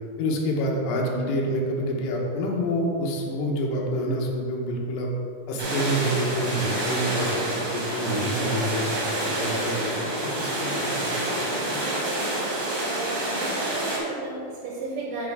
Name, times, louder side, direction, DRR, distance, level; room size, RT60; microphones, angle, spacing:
voice 1, 0.2-5.1 5.5-11.8, equal, 80° left, -1 dB, 3.2 m, -28 dB
sound 1, 5.6-14.0, right 1 dB, 50° right, 1.9 m, -28 dB
voice 2, 12.9-15.3, right 2 dB, 75° right, -2 dB, 2.4 m, -34 dB
9.5 x 4.4 x 4.7 m, 2.5 s
omnidirectional pair, 5.1 m